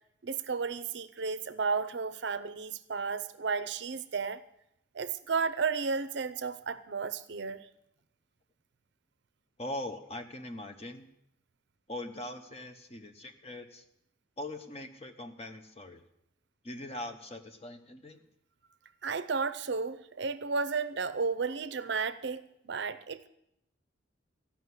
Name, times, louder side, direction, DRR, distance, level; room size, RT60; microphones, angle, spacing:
voice 1, 0.2-4.4 4.9-7.6 19.0-23.3, right 5 dB, 55° right, 13 dB, 0.6 m, -33 dB
voice 2, 9.6-11.0 11.9-13.8 14.4-16.0 16.6-18.2, left 1 dB, 30° left, 6 dB, 1.0 m, -41 dB
14.5 x 5.9 x 9.6 m, 0.79 s
head